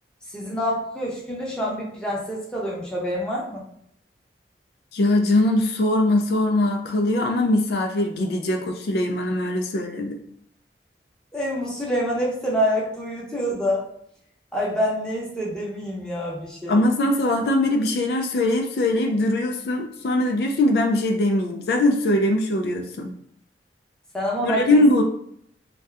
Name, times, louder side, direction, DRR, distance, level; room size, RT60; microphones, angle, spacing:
voice 1, 0.3-3.6 11.3-13.8 14.5-16.8 24.1-24.8, equal, 5° left, -5 dB, 0.7 m, -26 dB
voice 2, 4.9-10.2 16.7-23.1 24.4-25.0, left 1 dB, 65° left, 4 dB, 0.3 m, -21 dB
2.7 x 2.2 x 3.3 m, 0.69 s
head